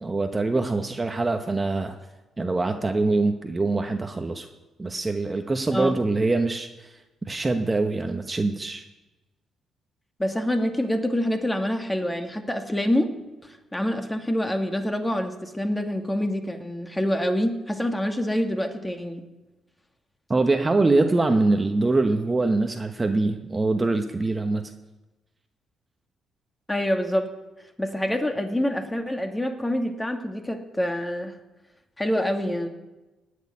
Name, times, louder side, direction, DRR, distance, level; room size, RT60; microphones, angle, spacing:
voice 1, 0.0-2.0 2.4-4.5 4.8-7.0 7.3-8.8 20.3-24.7, right 3 dB, 20° right, 5 dB, 1.1 m, -24 dB
voice 2, 10.2-13.1 13.4-19.2 26.7-27.3 27.8-31.3 32.0-32.7, left 1 dB, 10° left, 5 dB, 1.9 m, -26 dB
18.0 x 6.7 x 9.8 m, 1.1 s
cardioid pair, 90°, 0 cm